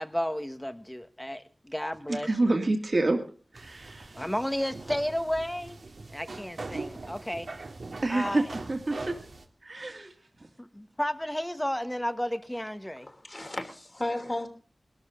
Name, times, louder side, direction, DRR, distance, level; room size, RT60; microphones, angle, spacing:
voice 1, 0.0-2.5 4.1-5.8 6.1-7.5 8.1-8.6 10.6-13.1, equal, 10° left, 10 dB, 1.4 m, -32 dB
voice 2, 2.1-3.2 3.5-4.3 8.0-8.4 8.7-9.1 9.6-10.1, right 2 dB, 55° right, 4 dB, 2.3 m, -27 dB
sound 1, 3.5-9.4, right 3 dB, 80° right, 2.1 m, -41 dB
voice 3, 13.0-14.5, left 1 dB, 30° left, 6 dB, 3.0 m, -34 dB
21.0 x 13.0 x 3.8 m, 0.39 s
wide cardioid pair, 75°, 0 cm